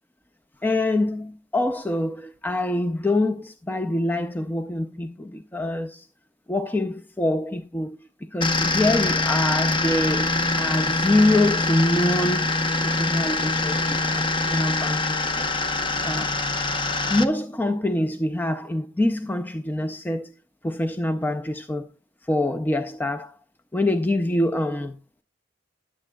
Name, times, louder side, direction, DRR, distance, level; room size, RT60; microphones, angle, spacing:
voice 1, 0.6-6.1 6.5-8.0 8.3-12.6 12.8-15.5 16.0-16.4 17.1-20.3 20.6-21.9 22.3-23.3 23.7-24.9, left 1 dB, 10° left, 0.5 m, -25 dB
sound 1, 8.4-17.2, left 2 dB, 25° left, 0.9 m, -24 dB
13.5 x 9.9 x 2.3 m
head